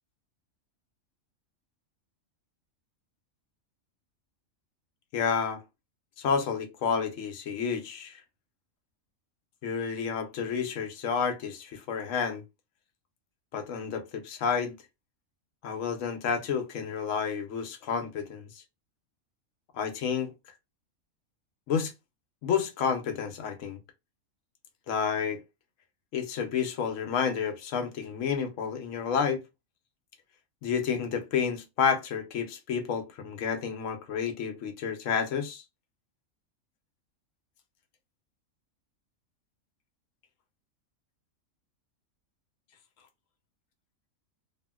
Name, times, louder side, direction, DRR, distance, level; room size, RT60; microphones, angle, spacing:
voice 1, 5.1-5.6 6.2-8.2 9.6-12.4 13.5-14.7 15.6-18.5 19.7-20.3 21.7-21.9 22.4-23.8 24.9-25.4 26.1-29.4 30.6-35.6, left 6 dB, 70° left, 1.0 m, -30 dB
2.8 x 2.7 x 2.3 m
omnidirectional pair, 1.4 m